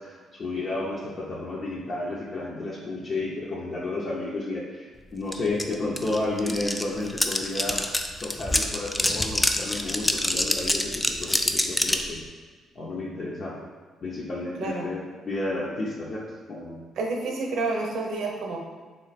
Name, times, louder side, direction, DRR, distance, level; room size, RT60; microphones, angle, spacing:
voice 1, 0.0-7.8 8.2-12.2 12.7-13.6 14.0-16.2 16.5-16.8, left 2 dB, 45° left, -6 dB, 0.7 m, -32 dB
sound 1, 5.3-5.4 5.6-12.1, left 1 dB, 10° left, 0.3 m, -26 dB
voice 2, 14.6-14.9 17.0-18.6, right 3 dB, 75° right, 0 dB, 0.7 m, -29 dB
3.3 x 3.1 x 4.1 m, 1.5 s
cardioid pair, 90°, 0 cm